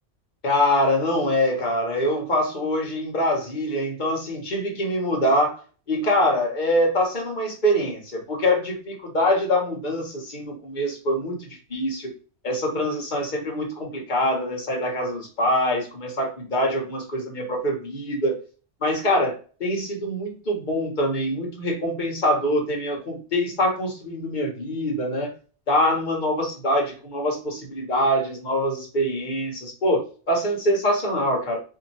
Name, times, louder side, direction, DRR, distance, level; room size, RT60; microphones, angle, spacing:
voice 1, 0.4-5.6 5.9-12.1 12.4-18.3 18.8-19.3 19.6-25.3 25.7-31.6, left 1 dB, 45° left, 0 dB, 1.2 m, -24 dB
2.9 x 2.8 x 4.1 m, 0.37 s
omnidirectional pair, 1.1 m